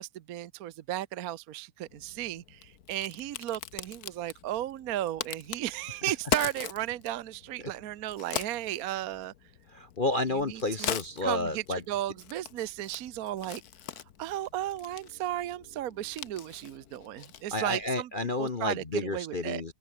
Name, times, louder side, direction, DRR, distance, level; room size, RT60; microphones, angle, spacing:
voice 1, 0.0-9.3 10.5-10.9 11.2-13.6 14.2-18.1 18.4-19.6, right 13 dB, 60° right, 0.9 m, -35 dB
Crack, 1.9-18.0, left 10 dB, 55° left, 1.3 m, -41 dB
voice 2, 9.7-11.8 17.5-19.7, left 2 dB, 35° left, 0.9 m, -31 dB
omnidirectional pair, 2.3 m